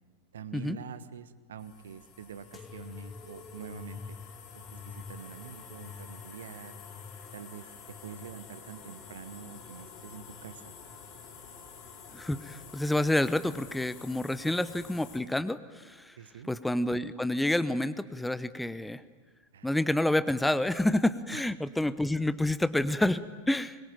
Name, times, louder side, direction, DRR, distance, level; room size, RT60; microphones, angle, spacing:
voice 1, 0.3-4.2 4.5-6.8 7.3-10.7 16.2-16.5 19.5-19.8 21.3-21.4, right 8 dB, 65° right, 12 dB, 1.3 m, -46 dB
sound 1, 1.6-15.2, left 6 dB, 40° left, 4.0 m, -49 dB
sound 2, 2.5-9.7 10.3-11.0 11.8-12.3 13.3-13.4, left 5 dB, 20° left, 1.3 m, -49 dB
voice 2, 12.1-16.2 16.5-19.0 19.6-23.8, left 1 dB, 5° left, 14 dB, 0.8 m, -28 dB
24.5 x 22.0 x 9.0 m, 1.4 s
figure-of-eight pair, 90°, 0 cm